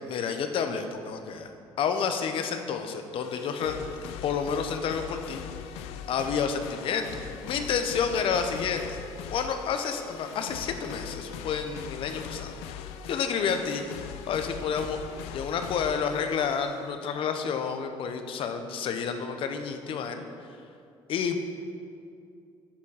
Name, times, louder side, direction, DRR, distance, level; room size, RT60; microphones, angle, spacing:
voice 1, 0.1-1.5 1.8-3.8 4.0-5.4 6.1-7.1 7.4-9.0 9.3-12.6 13.1-13.8 14.3-15.0 15.3-20.2 21.1-21.4, left 6 dB, 60° left, 7 dB, 0.8 m, -29 dB
sound 1, 3.2-16.9, left 8 dB, 85° left, 0.4 m, -41 dB
11.5 x 4.5 x 4.8 m, 2.5 s
supercardioid pair, 90°, 10 cm